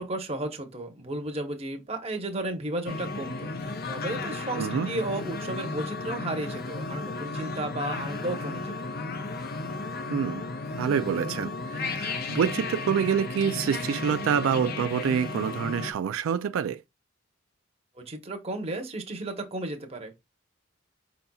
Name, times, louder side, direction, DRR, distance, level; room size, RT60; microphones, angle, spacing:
voice 1, 0.0-8.9 18.1-20.2, right 1 dB, 30° right, 0.9 m, -34 dB
sound 1, 2.9-15.9, left 3 dB, 50° left, 0.5 m, -34 dB
voice 2, 4.5-4.9 10.1-10.4 10.8-16.8, right 7 dB, 90° right, 0.3 m, -27 dB
5.4 x 4.0 x 2.3 m
head